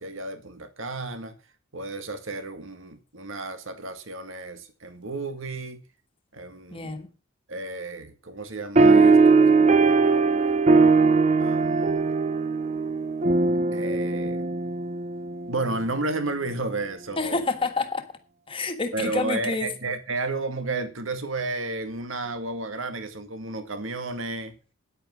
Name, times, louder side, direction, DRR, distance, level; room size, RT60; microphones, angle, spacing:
voice 1, 0.0-1.4 1.7-5.8 6.3-7.0 7.5-10.6 11.4-12.1 13.7-14.4 15.5-17.4 18.9-24.6, right 2 dB, 70° right, 1.9 m, -32 dB
voice 2, 6.7-7.1 17.2-18.1 18.5-19.7, left 3 dB, 25° left, 1.6 m, -28 dB
sound 1, 8.8-15.6, right 4 dB, 35° right, 0.6 m, -20 dB
10.0 x 8.9 x 6.2 m
head